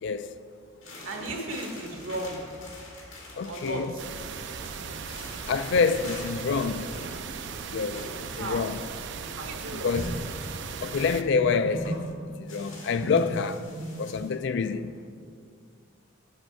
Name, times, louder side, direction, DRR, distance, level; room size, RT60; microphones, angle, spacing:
voice 1, 0.0-0.4 3.4-3.9 5.5-6.9 7.7-8.1 8.4-8.8 9.8-10.2 10.8-12.0 12.4-13.6 14.0-15.1, left 5 dB, 60° left, 0.3 m, -27 dB
sound 1, 0.8-4.0 4.3-6.3 6.6-7.5 8.0-8.2 8.5-8.6 9.4-9.5 9.9-10.4 11.3-12.0 12.5-14.3, right 1 dB, 90° left, 2.1 m, -39 dB
voice 2, 1.0-2.6 3.4-4.1 4.5-4.6 8.4-8.7 9.4-10.0, right 2 dB, 85° right, 1.3 m, -35 dB
sound 2, 4.0-11.2, right 5 dB, 60° right, 0.5 m, -38 dB
8.8 x 6.3 x 4.5 m
head